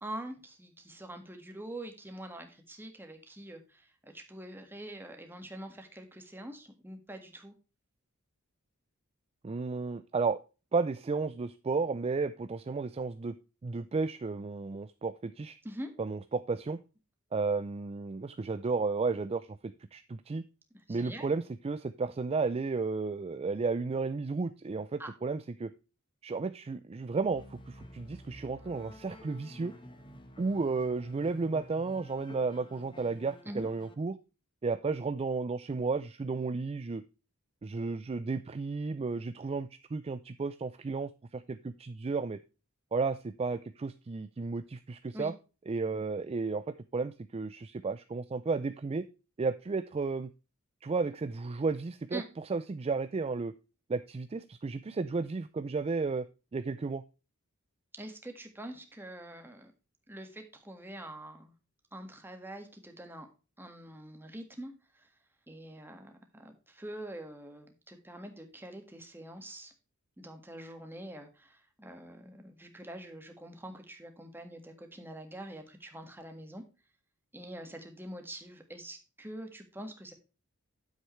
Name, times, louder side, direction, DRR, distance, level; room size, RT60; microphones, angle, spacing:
voice 1, 0.0-7.5 15.6-15.9 20.9-21.3 25.0-25.1 33.5-33.7 45.1-45.3 52.1-52.3 57.9-59.7 60.1-61.5 61.9-63.3 63.6-65.1 65.5-69.7 70.2-76.6 77.3-80.1, right 1 dB, 10° right, 5 dB, 1.7 m, -45 dB
voice 2, 9.4-10.4 10.7-13.4 13.6-15.6 16.0-16.8 17.3-20.4 20.9-25.7 26.2-29.7 30.4-34.2 34.6-37.0 37.6-42.4 42.9-45.3 45.7-49.0 49.4-50.3 50.8-52.2 52.5-53.5 53.9-56.3 56.5-57.0, right 4 dB, 30° right, 13 dB, 0.4 m, -33 dB
sound 1, 27.2-33.9, equal, 25° left, 1.2 m, -51 dB
9.3 x 7.9 x 3.1 m, 0.31 s
head